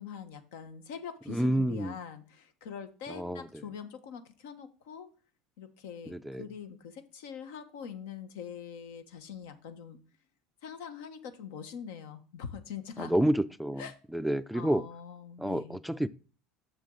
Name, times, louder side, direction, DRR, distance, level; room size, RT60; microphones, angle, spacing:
voice 1, 0.0-5.1 5.6-10.0 10.6-13.1 13.8-14.0 14.5-15.8, left 7 dB, 80° left, 9 dB, 1.1 m, -43 dB
voice 2, 1.3-1.9 3.1-3.6 6.1-6.4 13.0-13.8 14.1-14.9 15.4-16.1, right 1 dB, ahead, 12 dB, 0.3 m, -29 dB
7.2 x 6.7 x 3.8 m, 0.37 s
supercardioid pair, 110°, 0 cm